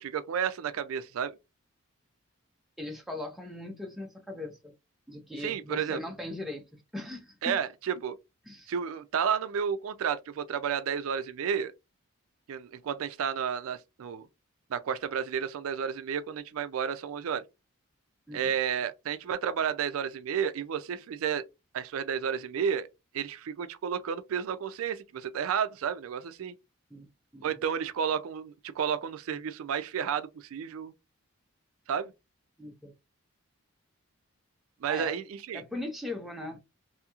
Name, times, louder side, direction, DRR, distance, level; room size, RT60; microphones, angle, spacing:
voice 1, 0.0-1.3 5.4-6.0 7.4-8.2 8.7-11.7 12.5-14.3 14.7-17.4 18.3-21.5 21.7-22.9 23.1-26.5 27.4-30.9 31.9-32.1 34.8-35.6, right 7 dB, 75° right, 0.4 m, -31 dB
voice 2, 2.8-4.7 5.1-6.6 6.9-7.6 8.5-8.7 18.3-18.5 26.9-27.1 27.3-27.5 32.6-32.9 34.9-35.1 35.5-36.6, left 2 dB, ahead, 0.5 m, -39 dB
2.8 x 2.7 x 2.3 m
head